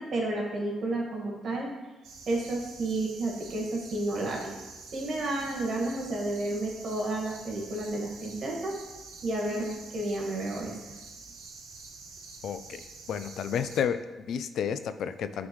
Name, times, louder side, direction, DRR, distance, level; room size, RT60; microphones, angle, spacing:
voice 1, 0.0-1.7 2.3-4.6 4.9-8.8 9.2-10.8, right 2 dB, 55° right, -1 dB, 1.8 m, -31 dB
sound 1, 2.0-13.8, right 4 dB, 85° right, 1.1 m, -47 dB
voice 2, 12.4-12.8 13.1-15.5, left 8 dB, 70° left, 11 dB, 0.3 m, -31 dB
9.4 x 3.9 x 3.1 m, 1.2 s
cardioid pair, 90°, 0 cm